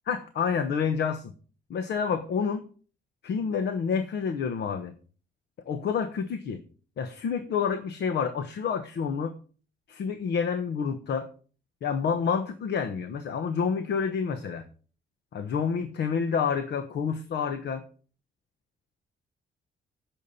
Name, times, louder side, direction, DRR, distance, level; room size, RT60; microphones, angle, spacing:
voice 1, 0.1-1.3 1.7-2.7 3.2-4.9 5.7-6.6 7.0-9.3 9.9-11.3 11.8-14.6 15.3-17.8, left 6 dB, 75° left, 9 dB, 1.1 m, -28 dB
11.0 x 7.3 x 4.2 m, 0.40 s
cardioid pair, 115°, 18 cm